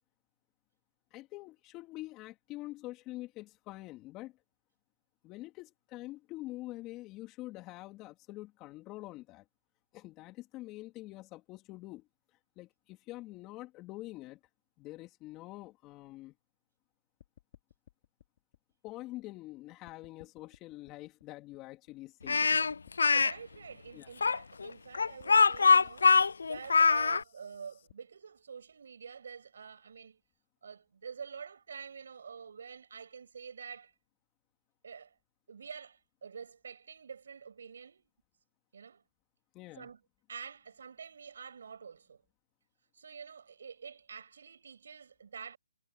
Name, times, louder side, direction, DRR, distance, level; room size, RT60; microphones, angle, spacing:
voice 1, 1.1-4.3 5.2-9.4 9.9-12.1 12.6-14.4 14.8-16.3 18.8-22.7 23.9-24.1 39.5-39.9, left 18 dB, 20° left, 3.5 m, -46 dB
sound 1, 17.2-19.6 19.9-22.2 22.5-27.9, left 11 dB, 40° left, 5.6 m, -61 dB
Speech, 22.3-23.3 24.2-27.2, left 5 dB, 75° left, 0.3 m, -23 dB
voice 2, 23.1-26.1 26.4-30.2 30.6-33.9 34.8-35.1 35.5-38.1 38.7-39.0 39.8-40.0 40.3-42.2 42.9-45.6, right 6 dB, 60° right, 7.9 m, -47 dB
hypercardioid pair, 160°, 0 cm